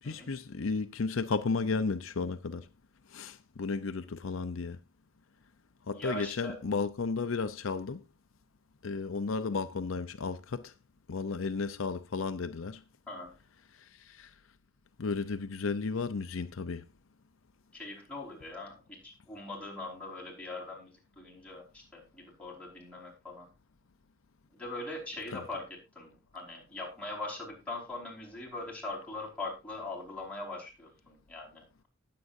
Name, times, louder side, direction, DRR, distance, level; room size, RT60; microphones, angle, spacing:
voice 1, 0.0-2.7 3.1-4.8 5.9-8.0 8.8-10.7 11.1-12.8 13.8-14.3 15.0-16.8 25.3-25.4, left 4 dB, 75° left, 0.6 m, -33 dB
voice 2, 5.9-6.6 13.1-13.3 17.7-23.5 24.5-25.7 25.9-31.9, left 2 dB, 5° left, 4.9 m, -41 dB
19.5 x 7.7 x 2.6 m
head